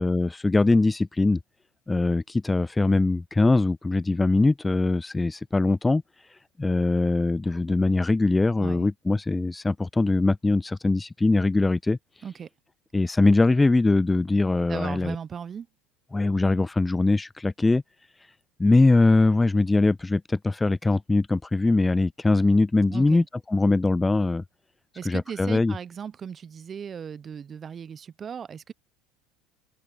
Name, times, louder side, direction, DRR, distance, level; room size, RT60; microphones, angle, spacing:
voice 1, 0.0-1.4 1.9-6.0 6.6-12.0 12.9-15.2 16.1-17.8 18.6-24.4 25.1-25.7, left 2 dB, 15° left, 0.3 m, -22 dB
voice 2, 8.6-8.9 12.2-12.5 14.7-15.7 22.9-23.3 24.9-28.7, right 7 dB, 35° right, 0.9 m, -37 dB
open air
hypercardioid pair, 75°, 0 cm